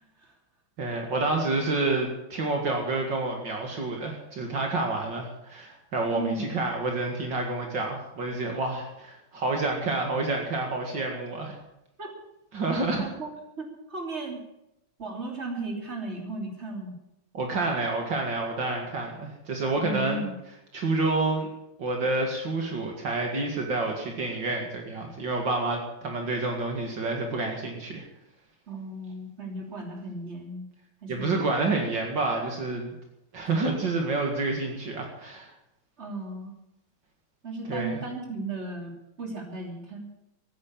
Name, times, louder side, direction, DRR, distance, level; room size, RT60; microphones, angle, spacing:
voice 1, 0.8-11.5 12.5-13.0 17.3-20.2 20.7-21.5 21.8-28.1 31.1-32.9 33.3-35.5 37.7-38.0, right 3 dB, 65° right, 1 dB, 2.8 m, -28 dB
voice 2, 6.1-6.5 12.0-12.1 13.0-13.3 13.6-14.4 15.0-16.9 19.8-20.4 28.7-30.7 31.0-31.5 36.0-36.5 37.4-40.1, right 2 dB, 35° right, 1 dB, 3.3 m, -35 dB
14.5 x 9.8 x 8.8 m, 0.87 s
omnidirectional pair, 2.1 m